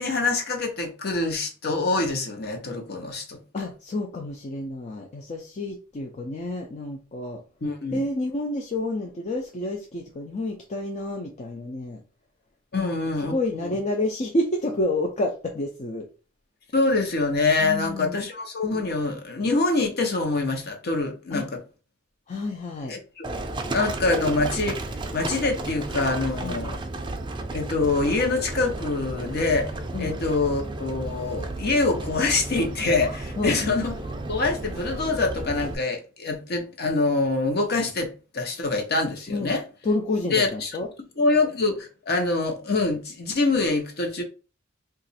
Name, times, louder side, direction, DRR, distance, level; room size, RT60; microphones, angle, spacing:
voice 1, 0.0-3.4 7.6-8.1 12.7-13.3 13.6-13.8 16.7-21.6 22.9-23.3 23.7-26.8 27.5-29.7 30.0-34.0 34.3-38.1 38.3-39.6 40.3-40.8 41.2-44.2, left 3 dB, 55° left, 0.8 m, -25 dB
voice 2, 3.5-7.4 7.9-12.0 12.7-16.1 17.6-18.2 21.3-21.4 22.3-22.9 26.4-26.6 29.9-30.2 33.4-33.6 39.3-39.6 39.8-40.9, left 2 dB, 35° left, 0.5 m, -29 dB
Livestock farm animals working animals, 23.2-35.7, right 2 dB, 25° right, 0.4 m, -33 dB
2.8 x 2.5 x 4.1 m
head